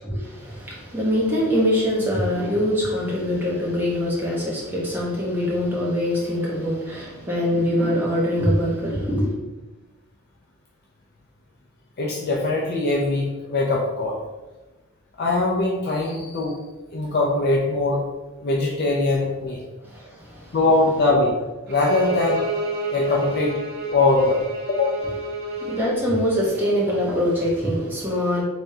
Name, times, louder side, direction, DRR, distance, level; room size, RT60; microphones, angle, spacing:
voice 1, 0.0-9.3 19.8-20.6 25.6-28.4, equal, 10° right, -6 dB, 0.9 m, -23 dB
voice 2, 12.0-14.2 15.2-16.6 16.9-18.0 18.4-19.6 20.5-22.5 22.9-23.5 23.9-24.4 24.7-25.0, left 2 dB, 45° left, -2 dB, 0.4 m, -22 dB
Bowed string instrument, 21.7-25.9, right 2 dB, 50° right, 0.6 m, -29 dB
3.5 x 3.4 x 2.7 m, 1.1 s
head